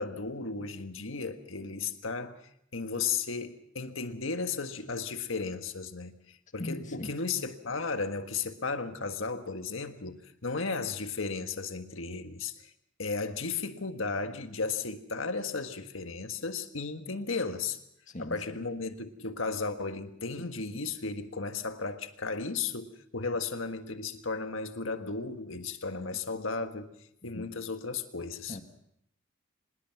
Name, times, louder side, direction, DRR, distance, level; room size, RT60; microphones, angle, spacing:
voice 1, 0.0-12.7 13.0-17.8 18.2-26.9 27.2-28.6, left 4 dB, 75° left, 8 dB, 1.6 m, -35 dB
voice 2, 6.6-7.1 18.1-18.6 27.2-27.5 28.5-28.6, left 1 dB, 40° left, 6 dB, 2.0 m, -40 dB
25.5 x 20.5 x 5.9 m, 0.72 s
head